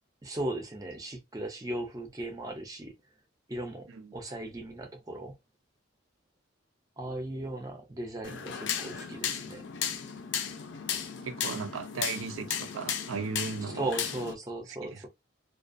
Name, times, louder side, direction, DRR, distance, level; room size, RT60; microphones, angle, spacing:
voice 1, 0.2-2.9 3.5-5.3 7.0-9.6 13.7-15.1, right 1 dB, 15° right, 0.4 m, -37 dB
sound 1, 8.2-14.3, left 8 dB, 60° left, 0.4 m, -35 dB
voice 2, 11.2-13.9 14.8-15.0, right 5 dB, 75° right, 0.4 m, -36 dB
2.3 x 2.2 x 2.5 m
head